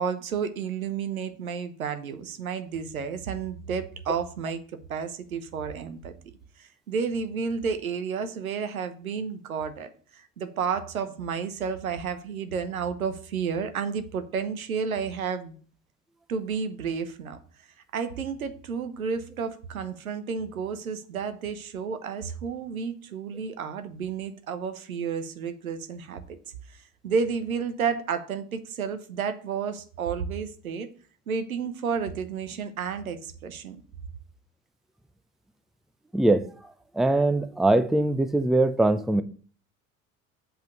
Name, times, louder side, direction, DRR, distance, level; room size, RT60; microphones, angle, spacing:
voice 1, 0.0-4.6 4.9-6.3 6.6-15.6 16.3-17.4 17.9-26.4 26.7-30.9 31.3-33.8, right 6 dB, 80° right, 0.9 m, -31 dB
voice 2, 36.1-36.5 37.0-39.2, right 2 dB, ahead, 0.6 m, -22 dB
7.5 x 5.2 x 6.5 m
figure-of-eight pair, 60°, 41 cm